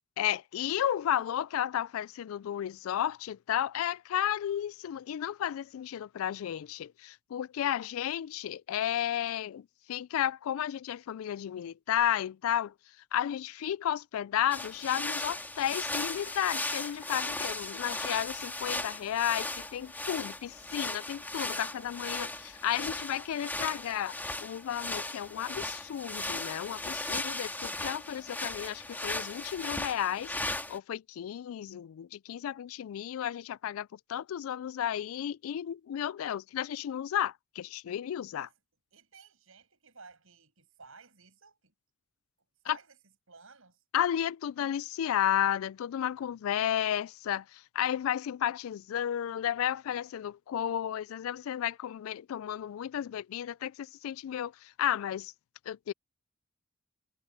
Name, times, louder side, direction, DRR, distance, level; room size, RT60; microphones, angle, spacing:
voice 1, 0.2-12.7 13.1-38.5 42.7-42.8 43.9-55.3 55.7-55.9, left 10 dB, 75° left, 0.3 m, -33 dB
sound 1, 14.5-30.8, left 2 dB, 10° left, 2.1 m, -37 dB
Gong, 15.6-25.2, left 7 dB, 50° left, 4.5 m, -60 dB
voice 2, 21.6-22.2 38.4-38.5 38.9-41.7 42.6-43.8, right 4 dB, 75° right, 7.9 m, -56 dB
head